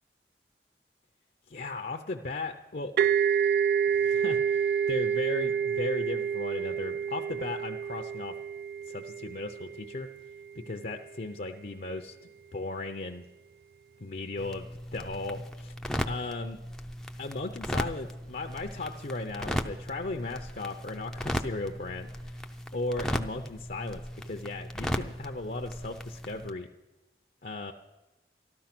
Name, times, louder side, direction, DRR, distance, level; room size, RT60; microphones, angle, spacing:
voice 1, 1.5-2.9 3.9-8.3 8.9-10.1 10.5-12.2 12.5-13.2 14.0-15.7 16.1-16.6 17.2-22.4 22.7-26.7 27.4-27.7, left 2 dB, 50° left, 4 dB, 0.6 m, -36 dB
sound 1, 3.0-10.5, right 7 dB, 55° right, 0.4 m, -28 dB
sound 2, 14.4-26.5, equal, 5° left, 0.5 m, -36 dB
13.0 x 13.0 x 6.0 m, 1.0 s
head